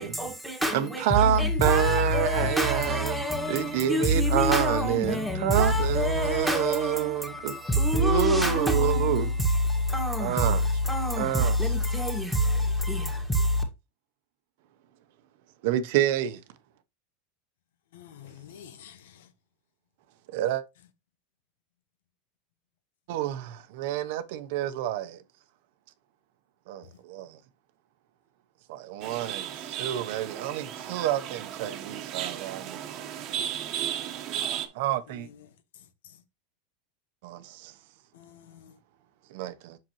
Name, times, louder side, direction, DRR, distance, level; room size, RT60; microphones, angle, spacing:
voice 1, 0.0-13.6, equal, ahead, 1.8 m, -26 dB
voice 2, 0.7-7.6 7.9-9.3 10.2-10.6 11.2-11.5 15.6-16.4 20.3-20.6 23.1-25.2 26.7-27.4 28.7-32.8 34.7-35.3 37.2-37.7 39.3-39.8, right 12 dB, 65° right, 0.8 m, -28 dB
voice 3, 17.9-19.3 35.1-35.3 38.1-38.7, left 10 dB, 85° left, 1.0 m, -49 dB
sound 1, 29.0-34.7, right 10 dB, 45° right, 1.1 m, -35 dB
7.5 x 6.0 x 3.0 m
supercardioid pair, 145°, 0 cm